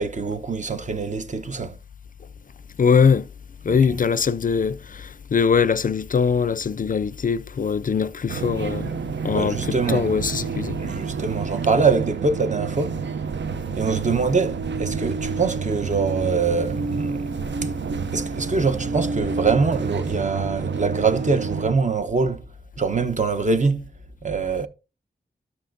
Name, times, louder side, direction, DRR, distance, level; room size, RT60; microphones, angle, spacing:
voice 1, 0.0-1.8 3.7-3.8 9.2-10.1 10.8-13.1 13.7-17.3 17.6-17.7 18.1-22.5 22.8-23.9 24.2-24.7, right 4 dB, 40° right, 0.8 m, -24 dB
voice 2, 2.8-3.3 3.6-8.9 9.2-10.8, left 6 dB, 50° left, 0.4 m, -21 dB
sound 1, 8.3-21.7, right 5 dB, 80° right, 0.6 m, -29 dB
13.0 x 5.6 x 2.6 m
wide cardioid pair, 85°, 18 cm